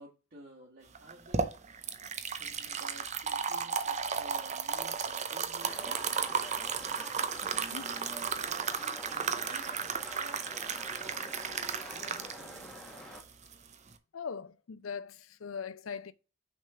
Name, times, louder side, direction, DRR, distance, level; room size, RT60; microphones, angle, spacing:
voice 1, 0.0-1.6 2.4-6.1 7.3-9.7 10.1-10.7 11.0-12.8, right 2 dB, 50° right, 1.8 m, -53 dB
sound 1, 1.0-13.9, right 6 dB, 35° right, 0.7 m, -34 dB
sound 2, 5.6-13.2, equal, 5° left, 1.3 m, -46 dB
voice 2, 7.4-7.9 14.1-16.1, left 6 dB, 85° left, 0.5 m, -41 dB
6.3 x 3.6 x 5.6 m
head